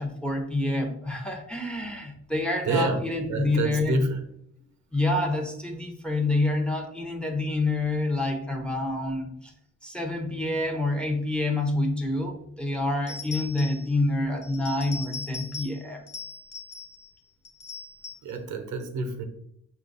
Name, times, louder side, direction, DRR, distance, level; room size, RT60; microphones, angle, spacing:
voice 1, 0.0-3.9 4.9-9.5 9.8-16.0, left 2 dB, 5° left, 2 dB, 0.7 m, -27 dB
voice 2, 2.7-4.2 18.2-19.3, right 3 dB, 75° right, 7 dB, 0.7 m, -28 dB
sound 1, 13.1-13.9 14.4-15.8 16.1-17.1 17.4-18.3, left 4 dB, 55° left, 0.8 m, -40 dB
5.7 x 2.4 x 3.9 m, 0.72 s
cardioid pair, 115°, 31 cm